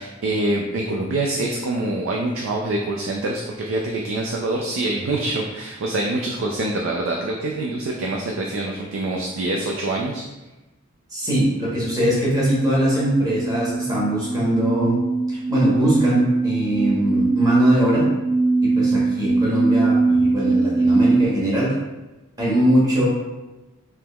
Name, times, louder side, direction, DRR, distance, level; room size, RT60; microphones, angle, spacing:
voice 1, 0.0-10.2, right 2 dB, 60° right, 0 dB, 0.3 m, -25 dB
voice 2, 11.1-15.0 15.3-18.1 18.6-21.7 22.4-23.1, right 1 dB, 15° right, -6 dB, 0.9 m, -21 dB
sound 1, 12.1-21.2, right 3 dB, 5° left, 0.4 m, -21 dB
3.5 x 2.9 x 2.2 m, 1.1 s
head